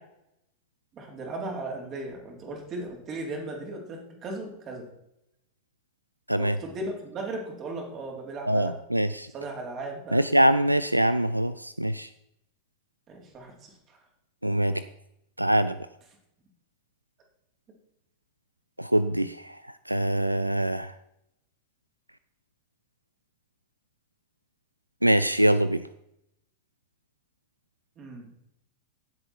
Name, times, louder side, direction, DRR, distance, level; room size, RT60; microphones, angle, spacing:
voice 1, 0.9-4.9 6.4-8.8 9.3-10.5 13.1-14.0 28.0-28.3, right 2 dB, 30° right, 1 dB, 4.2 m, -37 dB
voice 2, 8.5-9.3 10.1-12.1 14.4-14.8 15.4-15.8 18.8-19.6 19.9-20.9 25.0-25.8, right 1 dB, 90° right, 14 dB, 0.4 m, -23 dB
17.0 x 8.0 x 4.6 m, 0.79 s
figure-of-eight pair, 90°, 0 cm